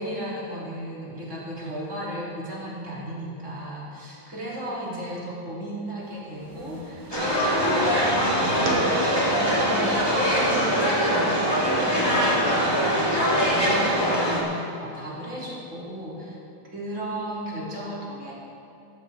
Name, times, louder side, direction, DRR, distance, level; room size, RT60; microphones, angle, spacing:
voice 1, 0.0-16.4 16.7-18.3, right 1 dB, 20° right, -6 dB, 2.5 m, -35 dB
sound 1, 5.9-11.2, right 1 dB, 45° right, 2.2 m, -42 dB
sound 2, 7.1-14.4, equal, 15° left, 0.8 m, -22 dB
sound 3, 7.9-14.0, right 3 dB, 60° right, 1.9 m, -39 dB
15.0 x 12.5 x 3.6 m, 2.8 s
omnidirectional pair, 4.5 m